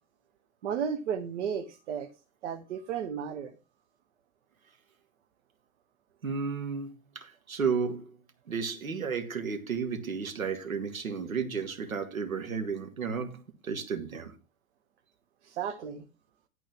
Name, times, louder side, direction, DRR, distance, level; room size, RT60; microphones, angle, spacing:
voice 1, 0.6-2.1 2.4-3.5 15.4-16.0, right 7 dB, 55° right, 1.0 m, -33 dB
voice 2, 6.2-8.2 8.5-14.3, right 5 dB, 75° right, 1.8 m, -33 dB
11.0 x 4.5 x 5.9 m
figure-of-eight pair, 95°, 42 cm